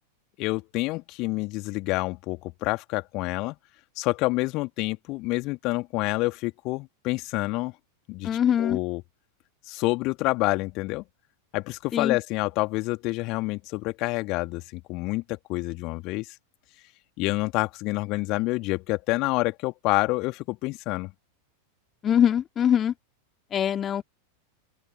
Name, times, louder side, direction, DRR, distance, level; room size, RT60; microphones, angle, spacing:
voice 1, 0.4-3.6 4.0-7.7 8.1-9.0 9.7-11.0 11.5-16.3 17.2-21.1, left 22 dB, 40° left, 2.6 m, -28 dB
voice 2, 8.2-8.8 11.9-12.2 22.0-22.9 23.5-24.0, left 9 dB, 25° left, 2.4 m, -23 dB
open air
figure-of-eight pair, 90°, 0 cm